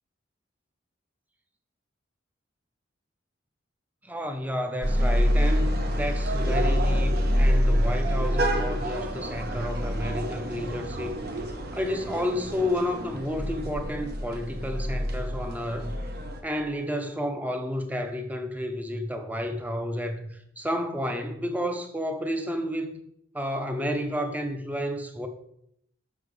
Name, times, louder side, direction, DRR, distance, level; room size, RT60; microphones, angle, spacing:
voice 1, 4.0-11.2 11.4-15.9 16.4-23.0 23.3-25.3, left 1 dB, 10° right, 0.6 m, -31 dB
sound 1, 4.8-16.4, equal, 55° right, 0.8 m, -26 dB
7.2 x 5.5 x 3.2 m
head